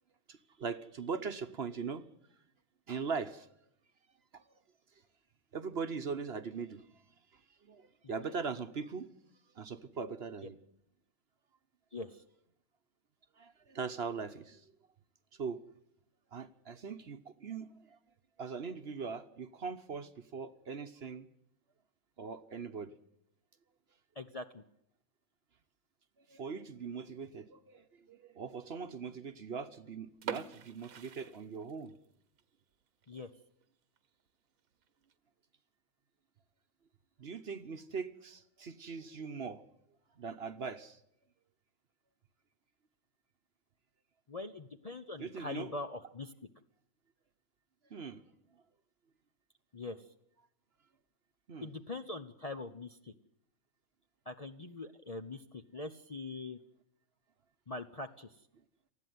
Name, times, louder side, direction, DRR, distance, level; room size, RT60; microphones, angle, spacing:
voice 1, 0.3-2.0 2.9-3.5 4.3-4.4 5.5-6.8 7.6-9.1 9.6-10.6 13.4-14.6 15.4-15.6 16.3-17.7 18.4-21.3 22.2-22.9 26.3-31.9 37.2-39.6 40.2-41.0 45.2-45.7 47.9-48.2 51.5-51.7, right 5 dB, 50° right, 9 dB, 1.1 m, -40 dB
voice 2, 11.9-12.2 24.2-24.6 33.1-33.3 44.3-46.3 49.7-50.0 51.6-53.1 54.3-56.6 57.7-58.3, left 2 dB, 35° left, 6 dB, 0.7 m, -43 dB
sound 1, 30.1-32.1 32.4-32.5 33.0-33.2 33.6-33.7 34.0-34.1 34.8-35.1, right 8 dB, 75° right, 1.5 m, -44 dB
19.5 x 14.0 x 9.3 m, 0.77 s
omnidirectional pair, 1.5 m